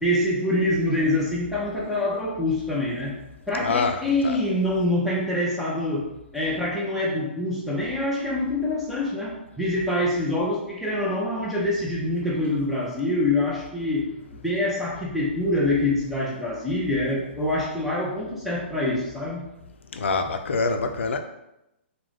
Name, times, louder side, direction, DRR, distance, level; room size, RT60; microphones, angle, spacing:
voice 1, 0.0-3.2 3.5-14.1 14.4-19.4, left 1 dB, ahead, 0.5 m, -25 dB
voice 2, 3.6-4.4 19.9-21.2, left 4 dB, 85° left, 0.3 m, -25 dB
2.3 x 2.0 x 3.2 m
hypercardioid pair, 135°, 6 cm